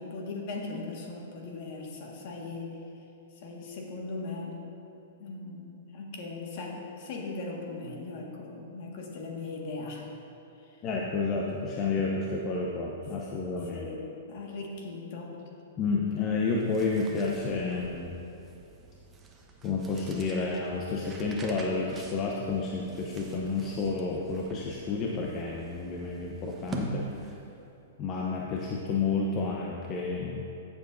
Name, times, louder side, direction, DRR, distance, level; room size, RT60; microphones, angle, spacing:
voice 1, 0.0-2.8 3.3-4.6 5.2-10.1 10.6-10.8 13.7-15.4, left 3 dB, 55° left, -1 dB, 1.7 m, -39 dB
voice 2, 10.8-13.9 15.8-18.1 19.6-27.1 28.0-30.5, left 4 dB, 35° left, -1 dB, 0.8 m, -30 dB
sound 1, 16.5-27.7, right 3 dB, 20° right, 0.9 m, -45 dB
14.0 x 7.1 x 2.7 m, 2.9 s
hypercardioid pair, 125°, 0 cm